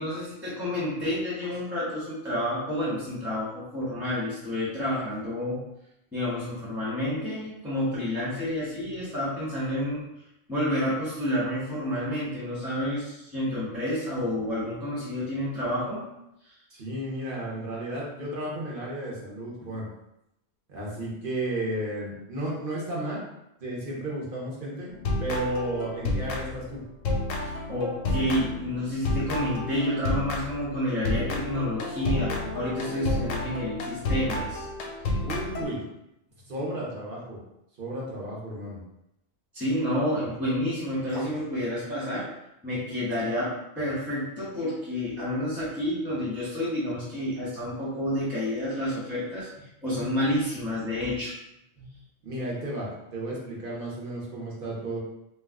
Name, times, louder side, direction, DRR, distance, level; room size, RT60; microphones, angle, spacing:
voice 1, 0.0-5.6 6.1-10.0 10.5-16.1 16.4-16.5 19.6-19.7 27.4-34.7 39.5-42.3 42.6-51.4 51.8-51.9, left 1 dB, ahead, -10 dB, 0.7 m, -29 dB
voice 2, 16.7-19.9 20.7-23.2 23.6-24.9 25.2-26.8 35.2-35.8 36.5-37.4 37.8-38.8 52.2-55.0, right 1 dB, 50° right, -4 dB, 0.9 m, -33 dB
sound 1, 24.9-26.8 27.0-30.6 31.0-35.6, left 2 dB, 85° left, 1.0 m, -30 dB
2.5 x 2.2 x 3.4 m, 0.85 s
omnidirectional pair, 1.3 m